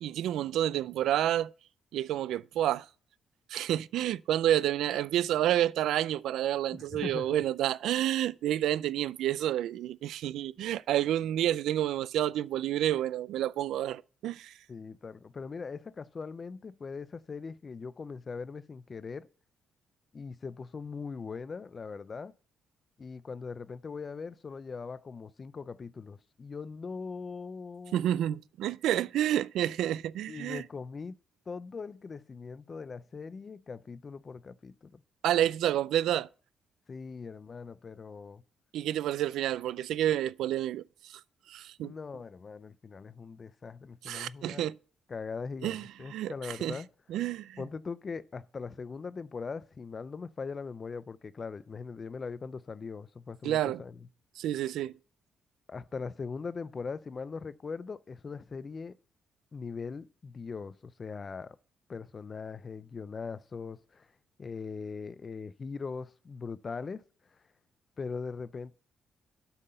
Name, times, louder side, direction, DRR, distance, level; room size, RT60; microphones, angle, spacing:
voice 1, 0.0-1.5 1.9-2.9 3.5-14.5 27.9-30.6 35.2-36.3 38.7-41.2 41.5-41.9 44.0-44.8 45.6-46.8 47.1-47.6 53.4-53.8 54.4-54.9, right 12 dB, 80° right, 0.4 m, -29 dB
voice 2, 6.7-7.4 14.7-19.3 20.1-22.3 23.0-28.1 30.3-31.2 31.5-35.0 36.9-38.4 41.8-44.7 45.1-46.9 47.6-54.0 55.7-58.9 59.5-61.6 61.9-64.1 64.4-67.0 68.0-68.7, left 5 dB, 35° left, 0.4 m, -40 dB
8.1 x 5.6 x 6.6 m
cardioid pair, 90°, 0 cm